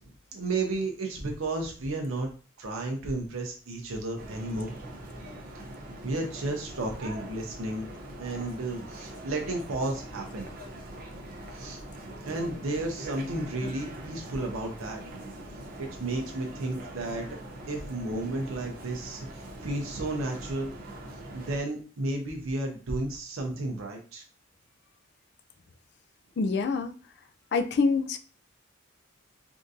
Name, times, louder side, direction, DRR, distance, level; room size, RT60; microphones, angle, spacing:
voice 1, 0.0-2.3 2.6-4.8 6.0-7.9 8.2-10.5 11.5-11.8 12.3-15.0 16.0-17.4 17.7-20.7 21.3-24.2, right 2 dB, 85° right, 1 dB, 0.6 m, -33 dB
sound 1, 4.2-21.6, right 1 dB, 45° right, 0.6 m, -42 dB
voice 2, 26.4-26.9 27.5-28.2, left 4 dB, 55° left, 8 dB, 0.4 m, -25 dB
3.6 x 2.5 x 2.6 m, 0.38 s
head